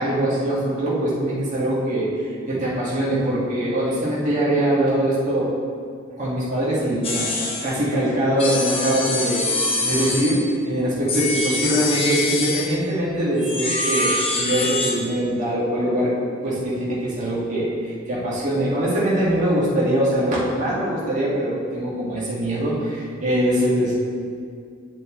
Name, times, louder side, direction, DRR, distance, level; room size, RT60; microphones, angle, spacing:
voice 1, 0.0-5.5 6.2-9.5 9.8-10.4 10.7-16.1 16.4-23.9, right 1 dB, 40° right, -8 dB, 2.0 m, -22 dB
sound 1, 7.0-7.8 8.4-10.5 11.1-12.8 13.4-15.0, left 2 dB, 30° left, 1.0 m, -24 dB
8.5 x 7.4 x 3.2 m, 2.2 s
head